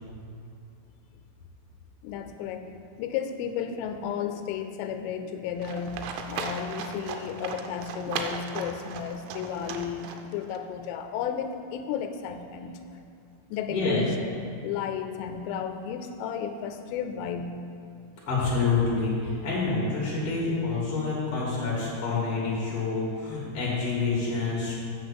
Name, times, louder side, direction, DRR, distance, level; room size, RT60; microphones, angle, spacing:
voice 1, 2.0-6.0 6.3-12.8 13.5-17.5, left 8 dB, 85° left, 6 dB, 3.1 m, -33 dB
Livestock farm animals working animals, 5.6-10.6, right 6 dB, 85° right, 3.0 m, -37 dB
voice 2, 13.7-14.0 18.3-24.8, left 4 dB, 65° left, -6 dB, 1.4 m, -27 dB
7.5 x 6.1 x 7.0 m, 2.5 s
omnidirectional pair, 5.8 m